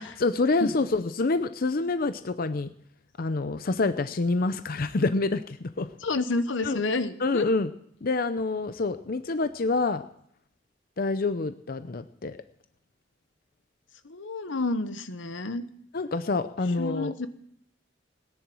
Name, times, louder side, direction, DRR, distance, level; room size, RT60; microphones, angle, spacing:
voice 1, 0.2-2.7 3.2-5.9 6.6-6.8 7.2-7.7 8.0-10.0 11.0-12.4 15.9-17.1, left 3 dB, 50° left, 11 dB, 0.6 m, -27 dB
voice 2, 6.0-7.5 14.0-15.6 16.8-17.3, left 3 dB, 85° left, 11 dB, 1.0 m, -29 dB
18.0 x 10.0 x 6.2 m, 0.69 s
head